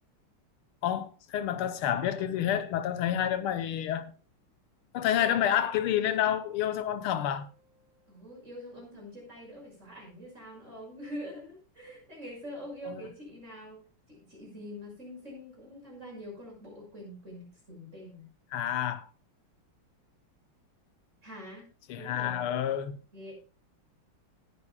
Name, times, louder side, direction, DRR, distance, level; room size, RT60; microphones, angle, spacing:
voice 1, 0.8-4.1 4.9-7.5 12.9-13.0 18.5-19.1 21.9-23.0, left 10 dB, 85° left, 1.7 m, -29 dB
Piano, 5.2-10.6 10.8-10.9 11.1-11.3 11.6-11.7 12.5-12.6, left 1 dB, 15° right, 5.5 m, -59 dB
voice 2, 8.1-13.8 14.1-18.3 21.2-21.7 21.9-22.5 23.1-23.3, equal, 35° right, 6.2 m, -44 dB
18.5 x 9.8 x 2.2 m
omnidirectional pair, 2.4 m